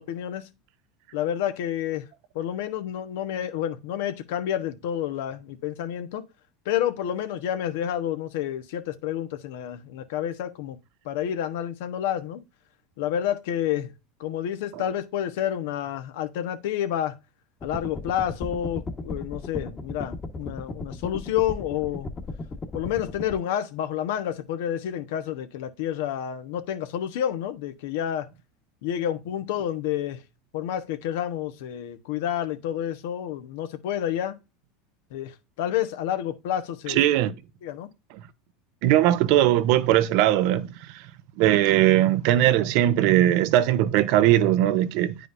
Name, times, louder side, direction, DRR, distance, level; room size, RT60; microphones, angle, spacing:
voice 1, 0.1-0.5 1.1-2.0 2.3-6.2 6.6-10.8 11.0-12.4 13.0-13.9 14.2-17.1 17.6-22.1 22.7-28.3 28.8-30.2 30.5-34.4 35.1-37.0 37.6-37.9, left 10 dB, 75° left, 1.1 m, -29 dB
sound 1, 17.6-23.3, left 2 dB, 25° left, 1.4 m, -36 dB
voice 2, 36.9-37.3 38.8-40.7 40.9-41.0 41.4-45.1, right 13 dB, 65° right, 0.7 m, -20 dB
9.7 x 4.9 x 2.6 m
supercardioid pair, 110°, 0 cm